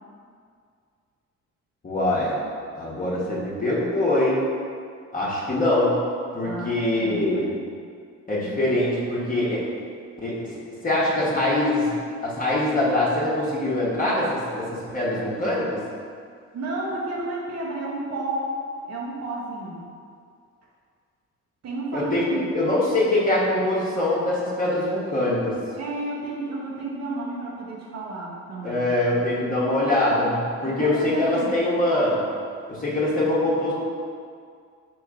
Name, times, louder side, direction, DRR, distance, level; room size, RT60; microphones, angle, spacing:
voice 1, 1.8-2.4 2.7-4.4 5.1-5.9 6.3-7.5 8.3-9.6 10.2-10.4 10.8-11.9 12.2-15.8 21.9-22.2 22.5-25.6 28.6-32.2 32.7-33.7, left 1 dB, 30° left, -7 dB, 1.0 m, -23 dB
voice 2, 6.4-7.6 16.5-18.5 18.9-19.9 21.6-22.5 25.7-28.9 30.6-31.6, right 2 dB, 60° right, -4 dB, 0.9 m, -31 dB
3.4 x 3.1 x 4.8 m, 2.2 s
cardioid pair, 90°, 30 cm